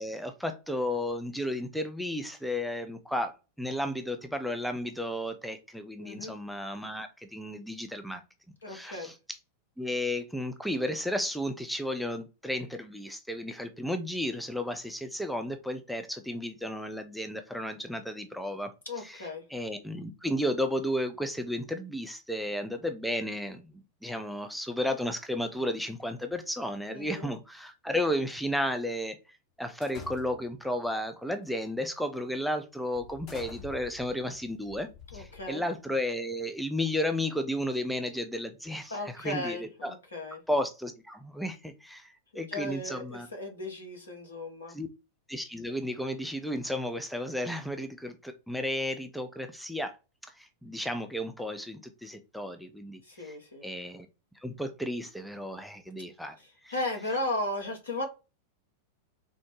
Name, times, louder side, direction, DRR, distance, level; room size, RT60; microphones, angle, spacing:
voice 1, 0.0-8.2 8.7-9.1 9.8-18.7 19.0-29.2 29.6-39.9 40.5-43.3 44.7-44.9 45.3-50.0 50.2-53.4 53.6-54.1 54.4-56.4 56.6-56.7, left 1 dB, ahead, 0.5 m, -33 dB
voice 2, 6.0-6.3 8.6-9.1 18.9-19.4 26.9-27.3 35.1-35.6 38.9-40.4 42.3-44.8 53.0-53.7 56.4-58.0, left 1 dB, 75° left, 1.1 m, -36 dB
sound 1, 29.8-30.6 31.4-31.7 32.2-32.3 33.0-35.9, left 7 dB, 40° left, 1.0 m, -48 dB
3.9 x 2.0 x 3.0 m
figure-of-eight pair, 90°, 0 cm